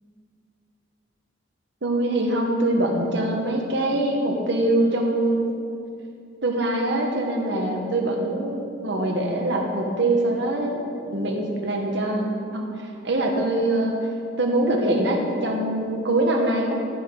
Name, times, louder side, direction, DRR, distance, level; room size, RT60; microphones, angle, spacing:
voice 1, 1.8-5.6 6.4-14.1 14.4-16.9, right 1 dB, 65° right, 1 dB, 1.3 m, -23 dB
14.5 x 6.0 x 3.8 m, 2.5 s
head